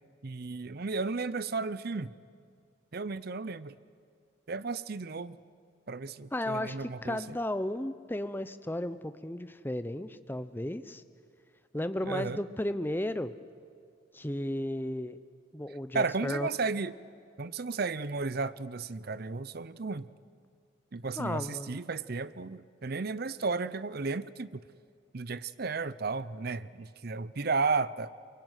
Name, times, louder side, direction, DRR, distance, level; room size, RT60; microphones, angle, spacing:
voice 1, 0.2-2.1 2.9-3.8 4.5-5.4 5.9-7.2 12.0-12.4 15.9-16.9 17.4-20.1 20.9-24.5 25.1-28.1, right 4 dB, 50° right, 17 dB, 0.6 m, -33 dB
voice 2, 6.3-11.0 11.7-13.3 14.1-15.2 15.5-16.5 21.2-21.8, left 1 dB, 10° left, 12 dB, 0.7 m, -34 dB
24.0 x 22.5 x 9.2 m, 2.2 s
head